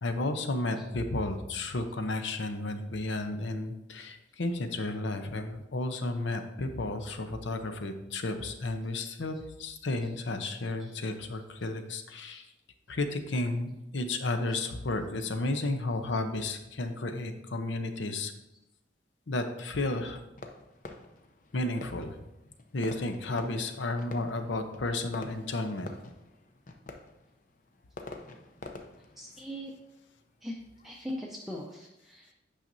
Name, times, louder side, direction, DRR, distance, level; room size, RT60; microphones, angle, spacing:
voice 1, 0.0-12.5 12.9-18.3 19.3-20.2 21.5-22.2 22.7-26.0, left 2 dB, 85° left, 7 dB, 0.7 m, -32 dB
Fireworks, 20.4-30.9, left 2 dB, 45° left, 0.6 m, -48 dB
voice 2, 29.2-29.7 30.4-30.6 30.8-32.3, equal, ahead, -3 dB, 0.5 m, -40 dB
8.9 x 5.7 x 2.7 m, 0.92 s
head